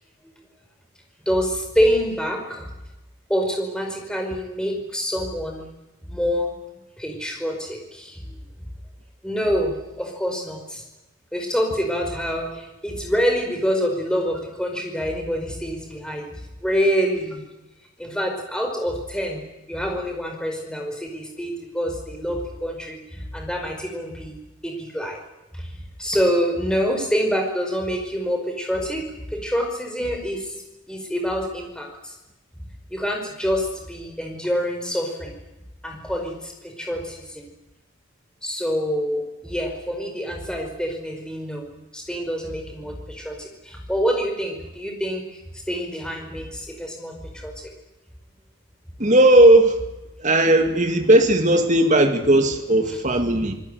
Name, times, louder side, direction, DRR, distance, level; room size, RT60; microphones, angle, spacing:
voice 1, 1.2-2.7 3.3-5.7 6.1-6.5 7.0-8.4 9.2-10.8 11.3-16.3 16.6-17.4 18.0-19.4 19.7-24.4 24.6-25.2 25.5-25.7 26.0-30.5 30.9-32.2 32.9-35.3 35.8-37.5 38.4-41.7 41.9-45.4 45.7-47.5, equal, 5° left, 2 dB, 5.1 m, -26 dB
voice 2, 49.0-49.8 50.2-53.5, right 1 dB, 35° right, 5 dB, 2.2 m, -16 dB
27.0 x 20.0 x 9.3 m, 0.98 s
head